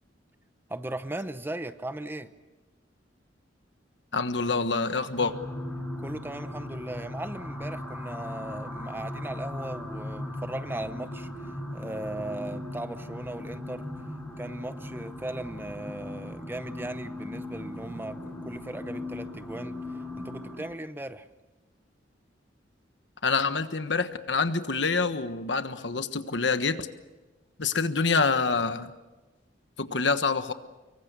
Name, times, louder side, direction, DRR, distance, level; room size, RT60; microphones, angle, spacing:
voice 1, 0.7-2.3 6.0-13.9 14.4-21.3, right 1 dB, 10° right, 0.8 m, -37 dB
voice 2, 4.1-5.3 23.2-26.9 27.6-28.9 29.8-30.5, left 4 dB, 70° left, 1.3 m, -26 dB
sound 1, 5.1-20.6, left 1 dB, 10° left, 5.1 m, -38 dB
25.0 x 23.5 x 6.8 m
head